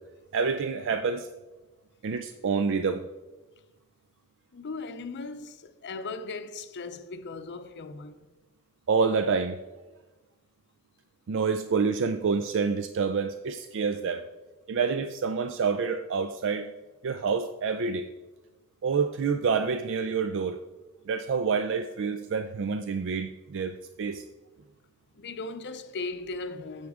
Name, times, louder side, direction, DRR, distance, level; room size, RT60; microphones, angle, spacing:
voice 1, 0.3-1.3 2.0-3.0 8.9-9.6 11.3-14.3 14.7-16.7 17.0-18.1 18.8-20.6 21.1-24.2, right 5 dB, 60° right, 0.4 m, -27 dB
voice 2, 4.5-8.3 25.1-26.9, left 3 dB, 50° left, 0.6 m, -38 dB
9.4 x 7.2 x 3.6 m
head